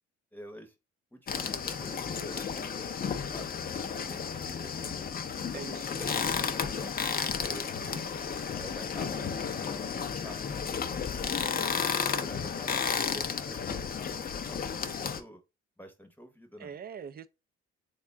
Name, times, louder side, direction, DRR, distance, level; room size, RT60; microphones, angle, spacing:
voice 1, 0.3-0.7 1.1-5.0 5.5-8.0 8.5-9.3 9.6-10.8 11.4-15.4 15.8-16.7, equal, 5° left, 0.8 m, -48 dB
sound 1, 1.3-15.2, left 6 dB, 30° left, 0.4 m, -33 dB
voice 2, 5.5-6.1 16.6-17.3, right 7 dB, 35° right, 0.4 m, -43 dB
3.5 x 2.2 x 3.4 m
cardioid pair, 90°, 30 cm